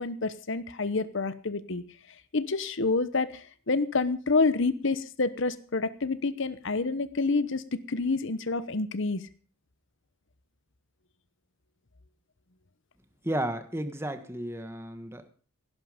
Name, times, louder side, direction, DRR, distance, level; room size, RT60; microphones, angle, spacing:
voice 1, 0.0-1.8 2.3-7.6 7.9-9.2, left 3 dB, 60° left, 14 dB, 0.9 m, -28 dB
voice 2, 13.2-15.3, right 1 dB, 10° right, 9 dB, 1.5 m, -33 dB
16.5 x 11.5 x 5.1 m, 0.41 s
head